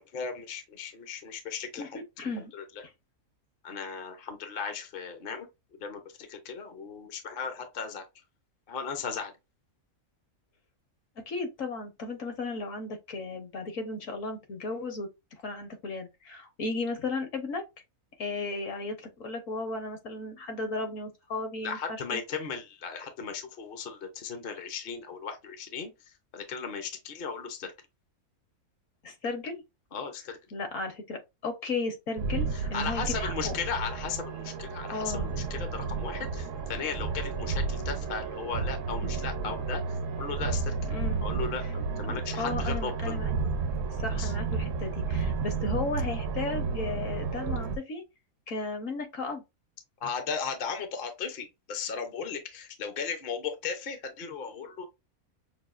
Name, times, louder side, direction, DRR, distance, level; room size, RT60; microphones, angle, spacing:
voice 1, 0.0-2.0 2.5-2.8 3.6-5.5 5.8-6.0 6.3-8.0 8.7-9.3 21.6-25.9 26.3-27.7 29.9-30.4 32.5-40.7 41.2-43.2 44.2-44.3 50.0-54.9, left 6 dB, 45° left, 0.8 m, -36 dB
voice 2, 1.8-2.5 3.8-3.9 11.2-15.1 15.4-17.6 18.2-22.2 29.0-29.6 30.5-33.6 34.9-35.3 40.9-41.2 42.1-43.3 44.0-48.0 48.5-49.4, left 3 dB, 65° left, 1.4 m, -35 dB
sound 1, 32.2-47.8, right 4 dB, 65° right, 1.1 m, -32 dB
6.0 x 2.4 x 2.4 m
omnidirectional pair, 1.5 m